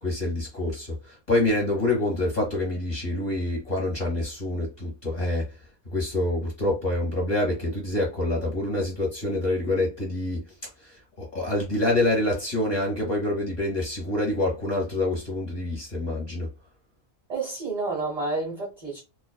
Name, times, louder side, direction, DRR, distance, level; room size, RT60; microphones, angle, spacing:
voice 1, 0.0-5.5 5.8-10.4 10.8-16.5, left 1 dB, 35° left, 1.0 m, -26 dB
voice 2, 17.3-19.0, right 3 dB, 40° right, 0.7 m, -30 dB
2.4 x 2.4 x 2.2 m
omnidirectional pair, 1.5 m